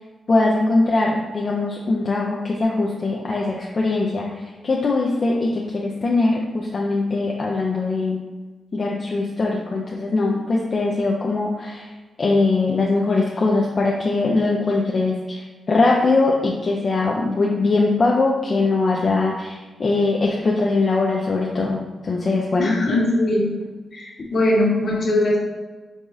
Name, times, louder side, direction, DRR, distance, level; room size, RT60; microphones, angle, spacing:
voice 1, 0.3-8.2 8.7-11.9 12.2-22.7 24.2-24.3, left 3 dB, 50° left, -2 dB, 0.5 m, -21 dB
voice 2, 22.6-23.5 23.9-25.4, left 1 dB, 70° left, -4 dB, 1.4 m, -20 dB
4.7 x 3.6 x 2.7 m, 1.3 s
cardioid pair, 55°, 0 cm